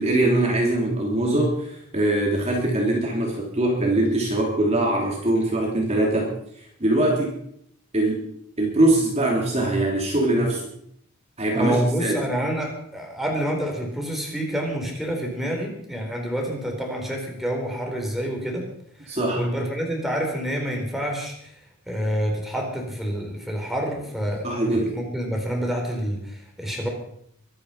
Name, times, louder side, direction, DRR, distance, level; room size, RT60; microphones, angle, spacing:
voice 1, 0.0-6.3 6.8-7.3 7.9-8.2 8.6-10.6 11.4-12.2 19.1-19.4 24.4-24.9, right 1 dB, 30° right, -1 dB, 3.1 m, -22 dB
voice 2, 11.5-18.6 19.0-21.5 21.9-26.9, equal, ahead, 0 dB, 4.3 m, -28 dB
23.5 x 10.5 x 5.8 m, 0.70 s
head